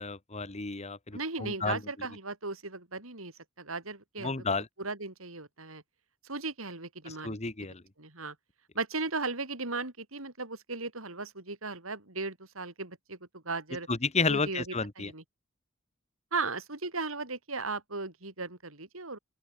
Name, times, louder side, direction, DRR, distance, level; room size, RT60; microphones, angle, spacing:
voice 1, 0.0-1.8 4.2-4.7 7.0-7.8 13.9-15.1, left 4 dB, 35° left, 1.6 m, -31 dB
voice 2, 1.1-3.3 3.6-4.4 4.8-5.8 6.2-7.4 8.0-8.3 8.7-13.9 14.3-15.2 16.3-19.2, right 3 dB, 90° right, 4.8 m, -36 dB
open air
head